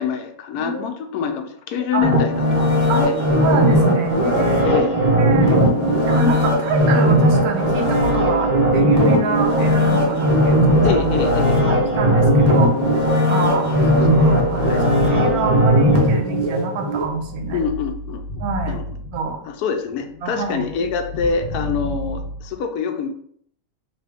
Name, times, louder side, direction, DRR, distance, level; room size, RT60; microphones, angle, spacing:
voice 1, 0.0-3.1 4.6-5.0 10.8-11.8 13.5-13.6 14.1-14.3 14.7-14.8 17.5-18.2 18.7-18.8 19.5-23.1, left 6 dB, 90° left, 5 dB, 1.1 m, -25 dB
voice 2, 0.6-0.9 1.7-2.1 2.9-3.1 3.4-4.8 5.2-5.5 6.1-11.0 11.6-12.7 13.3-17.6 18.4-18.8 19.1-19.4 20.2-20.6 21.8-21.9, right 4 dB, 85° right, 4 dB, 1.1 m, -27 dB
sound 1, 2.0-17.1 17.5-17.6, equal, 45° right, 0.5 m, -17 dB
sound 2, 8.0-13.1 13.6-16.3 16.7-19.6 19.9-22.5, left 1 dB, 40° left, 0.8 m, -32 dB
3.0 x 2.6 x 3.4 m, 0.63 s
omnidirectional pair, 1.6 m